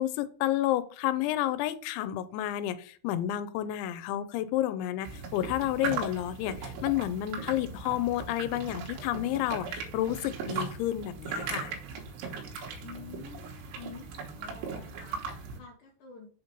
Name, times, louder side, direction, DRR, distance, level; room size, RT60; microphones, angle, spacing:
voice 1, 0.0-11.7, left 13 dB, 85° left, 14 dB, 2.9 m, -30 dB
sound 1, 5.0-15.6, right 5 dB, 90° right, 3.7 m, -38 dB
voice 2, 12.8-16.3, left 5 dB, 70° left, -2 dB, 2.1 m, -48 dB
7.3 x 4.0 x 5.2 m, 0.44 s
omnidirectional pair, 5.2 m